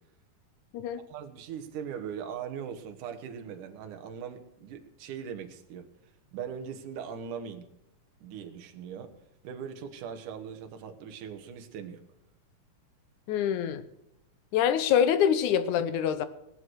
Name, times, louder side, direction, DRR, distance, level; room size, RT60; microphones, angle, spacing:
voice 1, 1.1-5.9 6.3-7.7 8.2-9.1 9.4-12.0, right 7 dB, 70° right, 2.8 m, -40 dB
voice 2, 13.3-13.8 14.5-16.3, left 9 dB, 70° left, 2.2 m, -25 dB
19.0 x 8.1 x 6.3 m
omnidirectional pair, 3.9 m